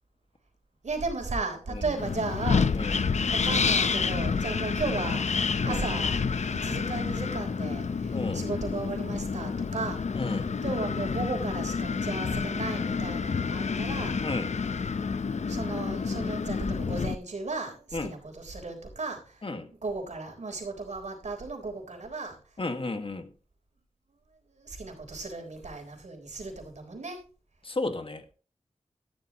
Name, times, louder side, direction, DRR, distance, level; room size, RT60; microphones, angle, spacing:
voice 1, 0.8-2.8 3.3-5.3 5.6-6.2 6.4-10.0 10.6-14.2 15.4-19.5 19.8-22.4 24.5-27.2, right 3 dB, 85° right, 3.7 m, -35 dB
Wind, 2.0-17.1, left 5 dB, 75° left, 0.7 m, -29 dB
voice 2, 8.1-8.5 10.1-10.4 14.2-14.5 17.9-18.1 19.4-19.7 22.6-23.3 27.6-28.3, left 2 dB, 50° left, 1.6 m, -33 dB
13.0 x 11.5 x 2.9 m
wide cardioid pair, 65°, 12 cm